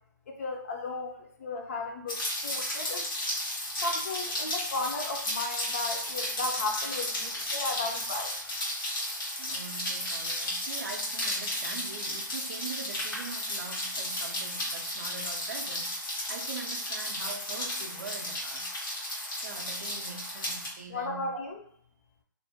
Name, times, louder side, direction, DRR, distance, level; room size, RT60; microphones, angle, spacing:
voice 1, 0.3-3.1 3.8-8.3 20.9-21.6, left 3 dB, 40° left, 2 dB, 0.5 m, -35 dB
Rain, 2.1-20.7, left 1 dB, 75° left, 1.3 m, -34 dB
voice 2, 9.4-18.7 19.4-21.4, right 4 dB, 50° right, 4 dB, 0.4 m, -42 dB
2.5 x 2.0 x 2.7 m, 0.65 s
hypercardioid pair, 145°, 11 cm